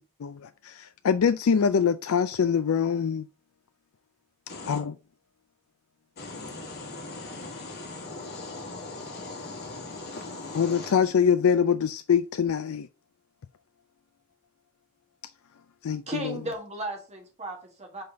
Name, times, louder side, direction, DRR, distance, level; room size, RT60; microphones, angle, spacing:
voice 1, 0.2-3.3 4.7-4.9 10.5-12.9 15.8-16.3, left 7 dB, 80° left, 0.4 m, -24 dB
voice 2, 4.5-4.8 6.2-11.1, left 2 dB, 50° left, 2.1 m, -39 dB
voice 3, 16.1-18.0, right 1 dB, 30° right, 1.6 m, -35 dB
5.3 x 3.9 x 5.6 m
head